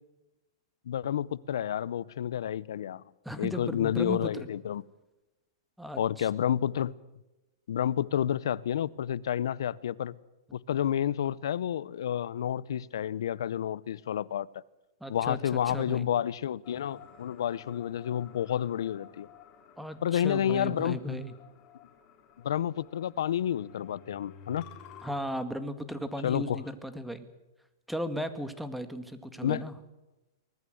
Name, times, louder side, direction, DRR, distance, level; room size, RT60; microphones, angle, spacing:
voice 1, 0.9-3.0 3.4-4.8 6.0-6.9 7.7-10.2 10.5-14.5 15.1-19.3 20.0-21.2 22.4-24.6 26.2-26.6 29.4-29.6, left 10 dB, 75° left, 0.8 m, -30 dB
voice 2, 3.2-4.5 5.8-6.3 15.0-16.1 19.8-21.3 25.0-27.3 27.9-29.8, equal, ahead, 2.0 m, -36 dB
sound 1, 16.6-25.1, left 7 dB, 35° left, 3.8 m, -53 dB
24.0 x 19.0 x 7.9 m
hypercardioid pair, 140°, 2 cm